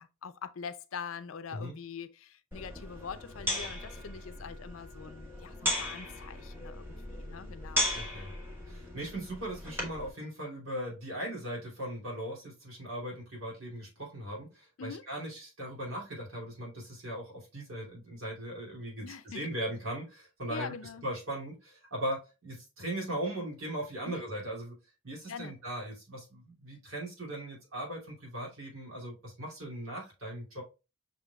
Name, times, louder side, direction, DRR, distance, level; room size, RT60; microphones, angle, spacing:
voice 1, 0.0-7.9 14.8-15.0 19.0-19.4 20.5-21.0 24.1-24.2 25.3-25.5, left 6 dB, 75° left, 0.5 m, -43 dB
sound 1, 2.5-10.1, left 1 dB, 10° right, 1.2 m, -37 dB
voice 2, 7.9-8.3 8.7-20.7 21.0-24.8 25.0-30.6, right 1 dB, 75° right, 2.6 m, -39 dB
5.8 x 3.7 x 2.2 m
head